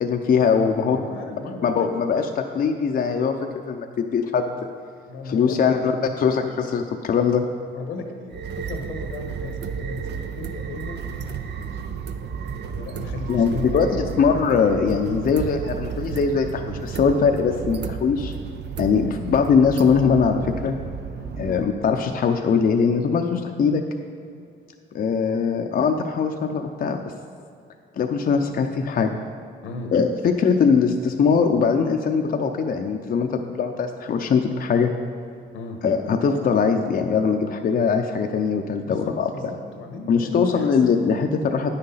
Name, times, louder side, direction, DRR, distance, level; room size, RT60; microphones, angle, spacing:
voice 1, 0.0-1.0 1.6-3.4 3.6-4.5 5.3-5.9 6.2-7.4 13.3-18.3 18.8-20.8 21.4-23.8 24.9-27.0 28.0-29.1 29.9-34.9 35.8-39.3 40.1-41.7, left 6 dB, 45° left, 4 dB, 0.6 m, -21 dB
voice 2, 0.6-2.4 5.1-5.7 7.7-11.0 11.4-11.8 12.7-14.1 21.1-21.3 29.6-29.9 35.5-35.8 38.8-40.7, left 3 dB, 90° left, 4 dB, 1.3 m, -36 dB
sound 1, 8.3-21.6, right 7 dB, 60° right, 0.6 m, -32 dB
9.4 x 6.5 x 5.6 m, 2.3 s
cardioid pair, 90°, 20 cm